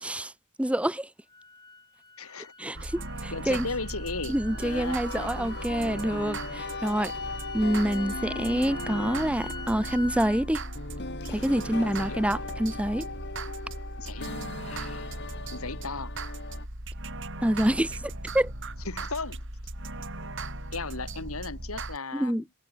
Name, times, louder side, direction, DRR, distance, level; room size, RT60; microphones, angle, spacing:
voice 1, 0.0-0.3 0.6-1.1 2.6-3.7 4.3-7.1 7.5-10.6 11.3-13.1 17.4-18.5 22.1-22.4, right 1 dB, 5° right, 0.8 m, -27 dB
sound 1, 1.3-10.5, left 3 dB, 20° left, 4.8 m, -45 dB
voice 2, 2.2-2.5 3.3-4.4 4.6-5.6 11.8-12.2 14.0-14.3 14.6-15.1 15.5-16.2 18.9-19.4 20.7-22.4, left 3 dB, 85° left, 3.6 m, -36 dB
sound 2, 2.7-22.0, right 2 dB, 60° right, 7.3 m, -38 dB
sound 3, 4.5-16.7, left 3 dB, 55° left, 3.9 m, -39 dB
head